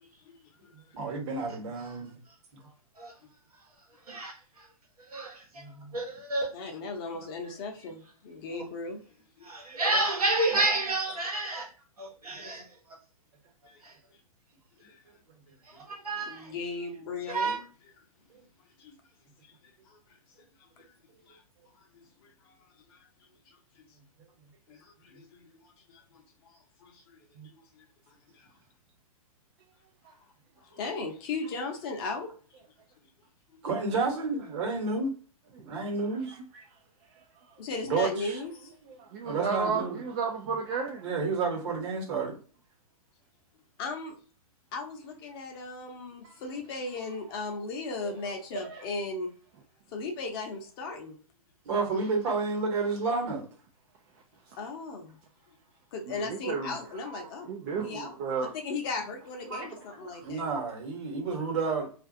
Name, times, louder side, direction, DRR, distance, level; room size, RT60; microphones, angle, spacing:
voice 1, 0.0-0.7 3.0-3.1 6.5-9.0 9.4-9.5 11.0-11.2 13.7-13.8 14.8-15.0 16.3-17.7 18.8-18.9 19.4-19.5 19.8-20.0 20.6-20.9 21.3-21.4 21.8-23.1 23.5-23.6 24.7-27.2 27.5-28.5 30.6-32.3 37.6-38.5 43.8-44.2 44.7-49.3 49.9-51.2 54.6-55.2 55.9-57.5 57.8-60.4, left 3 dB, 40° left, 0.7 m, -37 dB
voice 2, 0.9-2.2 5.5-6.0 27.3-27.5 33.6-35.1 35.6-36.3 37.8-38.4 39.2-40.0 41.0-42.3 51.6-53.5 60.2-61.9, right 4 dB, 50° right, 1.1 m, -30 dB
voice 3, 4.1-4.7 5.1-5.6 5.9-6.5 8.5-8.6 9.4-11.7 12.0-12.7 13.8-13.9 15.6-16.5 17.3-17.6, right 2 dB, 80° right, 1.0 m, -30 dB
voice 4, 39.1-41.0 48.5-48.8 56.1-56.7 57.5-58.5 59.5-59.7, right 5 dB, 35° right, 0.4 m, -32 dB
2.5 x 2.3 x 2.6 m
figure-of-eight pair, 115°, 19 cm